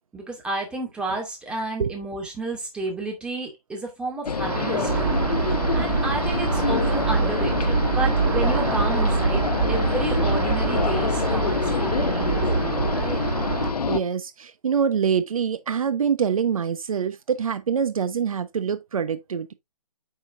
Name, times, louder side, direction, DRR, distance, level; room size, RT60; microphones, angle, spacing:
voice 1, 0.1-13.2, right 2 dB, 5° right, 2.4 m, -31 dB
sound 1, 4.2-14.0, left 5 dB, 80° left, 1.1 m, -26 dB
sound 2, 4.4-13.7, right 5 dB, 45° right, 1.7 m, -25 dB
voice 2, 13.9-19.5, right 7 dB, 65° right, 1.0 m, -25 dB
8.6 x 6.2 x 2.6 m
hypercardioid pair, 155°, 20 cm